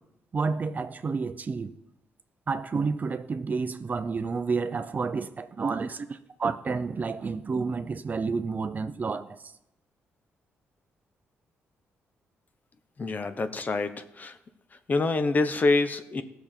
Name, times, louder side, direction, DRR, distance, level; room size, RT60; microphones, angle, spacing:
voice 1, 0.3-1.7 2.5-9.4, right 4 dB, 35° right, 0.6 m, -30 dB
voice 2, 13.0-13.9 14.2-14.3 14.9-16.2, left 3 dB, 35° left, 0.9 m, -25 dB
17.0 x 6.9 x 4.5 m
cardioid pair, 105°, 5 cm